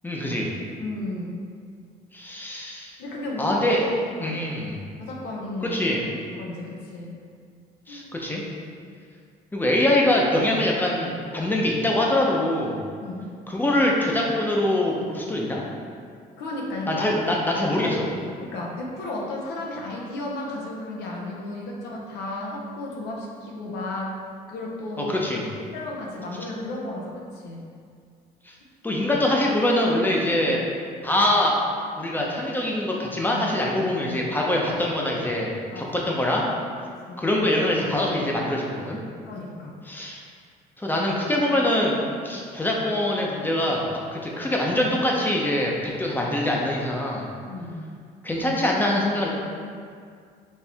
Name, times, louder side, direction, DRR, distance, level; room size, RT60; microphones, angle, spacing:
voice 1, 0.0-0.5 2.1-2.9 3.4-3.9 4.2-4.8 5.6-6.0 7.9-8.4 9.5-12.8 13.5-15.6 16.9-18.1 25.0-25.5 28.8-30.6 31.0-31.6 32.0-35.5 35.8-36.4 37.2-39.0 39.9-40.2 40.8-42.0 42.2-43.8 44.1-47.3 48.2-49.3, left 1 dB, 10° left, -2 dB, 0.7 m, -24 dB
voice 2, 0.8-1.4 3.0-3.6 4.2-4.5 5.0-5.8 6.4-7.1 7.9-8.1 13.0-13.3 16.4-17.1 18.4-24.1 24.5-25.2 25.7-27.7 35.7-36.0 37.1-37.2 39.3-39.8 47.5-47.8, left 2 dB, 85° left, -2 dB, 0.9 m, -33 dB
4.4 x 3.1 x 3.5 m, 2.2 s
cardioid pair, 110°, 17 cm